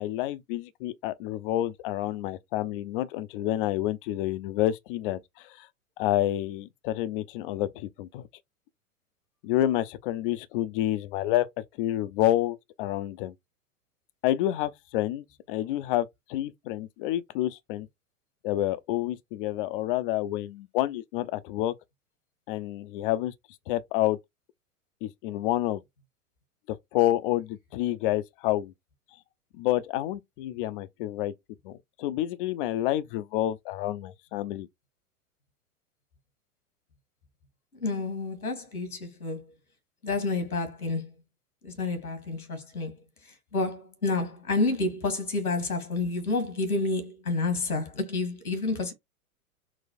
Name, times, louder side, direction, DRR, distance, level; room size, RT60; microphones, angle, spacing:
voice 1, 0.0-5.7 6.0-8.3 9.4-13.3 14.2-17.9 18.4-21.7 22.5-23.3 23.7-24.2 25.0-25.8 26.7-28.7 29.5-31.3 31.6-34.7, left 14 dB, 40° left, 0.5 m, -29 dB
voice 2, 37.8-39.4 40.0-41.1 41.6-43.0 43.2-48.9, left 3 dB, 85° left, 1.6 m, -29 dB
4.0 x 2.2 x 4.2 m
figure-of-eight pair, 95°, 43 cm